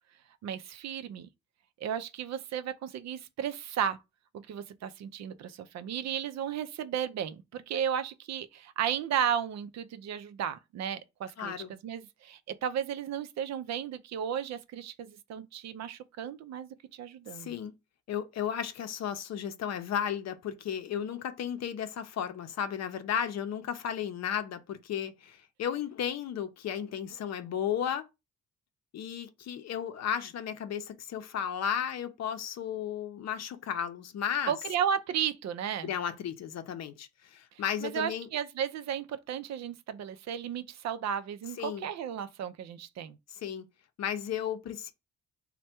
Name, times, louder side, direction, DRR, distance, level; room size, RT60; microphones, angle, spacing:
voice 1, 0.4-1.3 1.8-4.0 4.3-17.6 34.5-35.9 37.8-43.2, right 8 dB, 60° right, 0.5 m, -34 dB
voice 2, 11.4-11.7 17.3-17.7 18.1-28.1 28.9-34.5 35.8-38.3 41.6-41.9 43.3-43.7 44.0-44.9, left 9 dB, 60° left, 0.6 m, -34 dB
3.3 x 2.2 x 4.2 m
cardioid pair, 90°, 30 cm